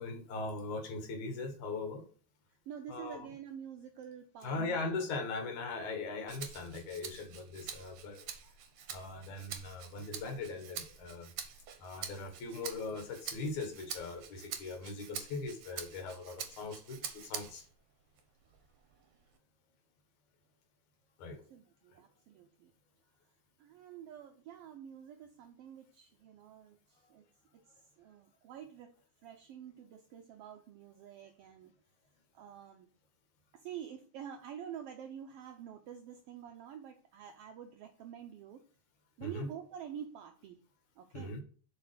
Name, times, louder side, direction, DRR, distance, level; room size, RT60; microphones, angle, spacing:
voice 1, 0.0-2.0 2.9-3.3 4.4-8.5 8.9-11.3 11.8-17.6 21.2-21.4 39.2-39.5 41.1-41.4, left 3 dB, 85° left, 5 dB, 2.8 m, -40 dB
voice 2, 2.5-4.9 6.2-6.3 21.2-22.7 23.6-27.3 27.5-31.7 32.3-32.9 33.5-38.6 39.2-40.6 41.0-41.3, right 9 dB, 80° right, 6 dB, 1.3 m, -48 dB
Rattle (instrument), 6.3-17.7 18.2-19.4, right 8 dB, 65° right, 1.6 m, -46 dB
7.1 x 4.6 x 5.0 m, 0.43 s
omnidirectional pair, 3.3 m